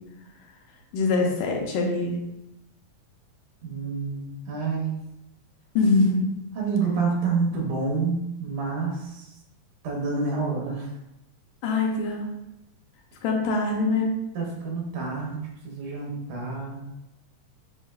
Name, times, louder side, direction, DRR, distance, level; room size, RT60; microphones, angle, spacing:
voice 1, 0.9-2.1 5.8-6.4 11.6-12.3 13.2-14.1, left 3 dB, 85° left, 0 dB, 2.2 m, -23 dB
voice 2, 3.6-5.0 6.5-9.3 9.8-10.9 14.3-16.8, right 4 dB, 75° right, -1 dB, 2.3 m, -28 dB
7.8 x 2.6 x 2.4 m, 0.87 s
omnidirectional pair, 3.8 m